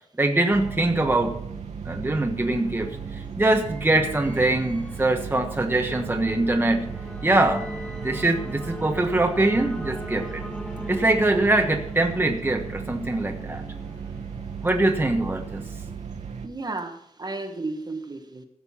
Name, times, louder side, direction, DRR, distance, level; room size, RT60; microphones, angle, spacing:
voice 1, 0.2-1.4 1.9-6.9 7.2-7.7 8.0-10.4 10.9-13.6 14.6-15.6, right 2 dB, 15° right, 2 dB, 1.3 m, -23 dB
sound 1, 0.5-16.5, right 6 dB, 75° right, 1.2 m, -36 dB
sound 2, 1.8-15.5, equal, 10° left, 2.2 m, -41 dB
voice 2, 16.4-18.4, right 2 dB, 35° right, 6 dB, 1.4 m, -33 dB
16.0 x 6.8 x 5.6 m, 0.73 s
wide cardioid pair, 125°, 12 cm